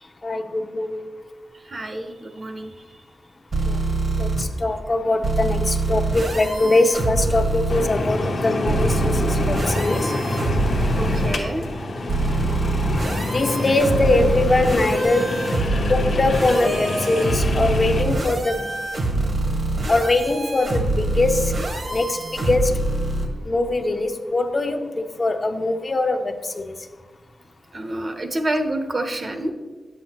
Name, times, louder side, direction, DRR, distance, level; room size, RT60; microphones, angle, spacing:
voice 1, 0.2-1.1 3.7-3.8 4.2-10.2 13.3-15.4 15.9-18.7 19.9-21.5 21.9-22.8 23.4-26.7, left 2 dB, 35° left, 6 dB, 0.5 m, -22 dB
voice 2, 1.6-3.0 11.0-11.8 27.7-29.5, right 1 dB, 40° right, 6 dB, 0.7 m, -28 dB
sound 1, 3.5-4.4 5.2-7.8 8.7-11.3 12.1-23.3, right 2 dB, 55° right, 1.1 m, -24 dB
sound 2, 7.7-18.0, left 2 dB, 80° left, 0.9 m, -26 dB
9.4 x 7.7 x 2.9 m, 1.4 s
wide cardioid pair, 125°, 0 cm